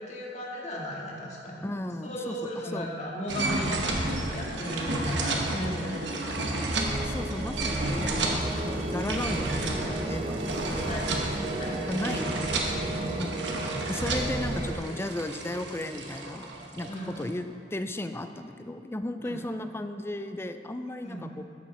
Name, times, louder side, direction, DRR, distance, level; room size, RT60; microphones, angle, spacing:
voice 1, 0.0-1.7 2.0-6.5 10.8-11.0 11.6-11.7 12.8-13.0 16.9-17.1 19.3-19.4 21.0-21.3, equal, 40° left, -3 dB, 1.8 m, -35 dB
voice 2, 1.6-2.9 7.0-10.4 10.7-11.1 11.9-12.9 13.2-13.3 13.9-16.5 16.7-17.4 17.7-21.4, left 1 dB, 15° left, 9 dB, 0.4 m, -35 dB
sound 1, 3.3-17.2, right 2 dB, 75° right, 1.1 m, -32 dB
sound 2, 4.5-14.7, right 2 dB, 35° right, 0.8 m, -34 dB
11.5 x 7.3 x 4.3 m, 2.5 s
head